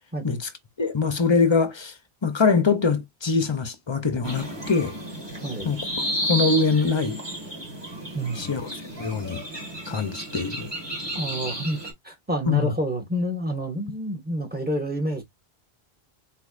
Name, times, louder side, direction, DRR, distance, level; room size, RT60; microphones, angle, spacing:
voice 1, 0.8-1.9 2.2-4.9 5.6-5.8 6.2-7.2 8.4-8.7 9.0-9.4 9.9-10.7 12.4-12.7, left 4 dB, 30° left, 0.6 m, -23 dB
sound 1, 4.2-11.9, right 1 dB, 25° right, 1.6 m, -32 dB
voice 2, 8.1-8.6 11.1-15.2, right 1 dB, 10° right, 1.3 m, -29 dB
4.3 x 3.1 x 2.4 m
omnidirectional pair, 1.1 m